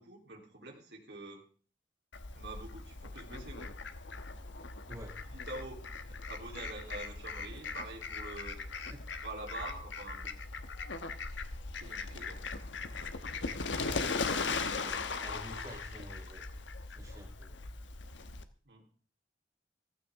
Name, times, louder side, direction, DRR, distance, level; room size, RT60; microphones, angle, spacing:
voice 1, 0.0-1.5 2.3-3.7 5.3-8.6 9.2-10.4 11.8-12.4 18.6-18.8, right 2 dB, 65° right, 1 dB, 3.5 m, -46 dB
Fowl, 2.1-18.4, left 4 dB, 85° left, 1.2 m, -39 dB
voice 2, 13.8-16.4 16.9-17.7, equal, 20° right, -1 dB, 5.2 m, -49 dB
15.5 x 15.0 x 3.6 m, 0.41 s
head